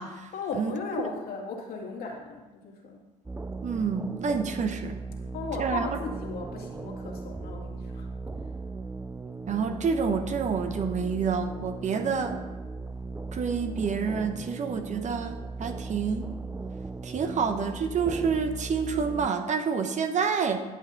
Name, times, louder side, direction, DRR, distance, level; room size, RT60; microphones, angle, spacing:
voice 1, 0.3-3.0 5.3-8.1, left 4 dB, 55° left, 0 dB, 2.3 m, -36 dB
sound 1, 3.3-19.3, right 3 dB, 10° right, 0.5 m, -37 dB
voice 2, 3.6-5.0 5.6-5.9 9.5-12.4 13.3-16.2 17.0-20.6, right 5 dB, 40° right, 7 dB, 1.0 m, -28 dB
10.5 x 8.2 x 4.0 m, 1.1 s
hypercardioid pair, 65°, 19 cm